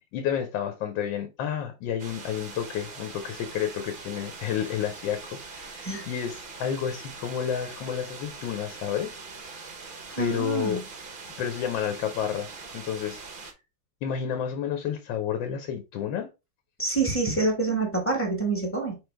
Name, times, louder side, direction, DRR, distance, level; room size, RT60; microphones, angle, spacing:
voice 1, 0.1-9.1 9.4-9.6 10.2-10.8 11.4-13.2 14.0-16.3, left 8 dB, 85° left, 1.4 m, -30 dB
sound 1, 2.0-13.5, right 4 dB, 60° right, 0.5 m, -42 dB
voice 2, 10.1-10.8 16.8-19.0, right 3 dB, 10° left, 1.0 m, -27 dB
4.8 x 3.1 x 3.3 m
omnidirectional pair, 2.0 m